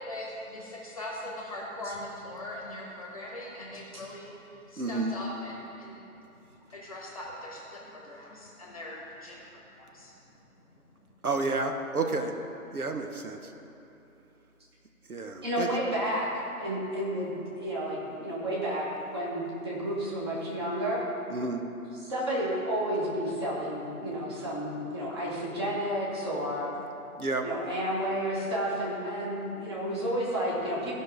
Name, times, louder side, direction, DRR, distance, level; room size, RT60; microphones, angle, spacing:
voice 1, 0.0-4.3 4.7-6.0 6.7-10.1, left 1 dB, 25° left, -3 dB, 1.2 m, -41 dB
voice 2, 4.8-5.1 11.2-12.3 12.7-13.4 15.1-15.7 21.3-21.6 27.2-27.4, right 3 dB, 75° right, 5 dB, 1.0 m, -30 dB
voice 3, 15.4-18.9 19.1-21.0 21.9-26.7 27.4-30.9, equal, 15° right, -6 dB, 1.4 m, -31 dB
15.0 x 5.4 x 4.7 m, 3.0 s
figure-of-eight pair, 155°, 44 cm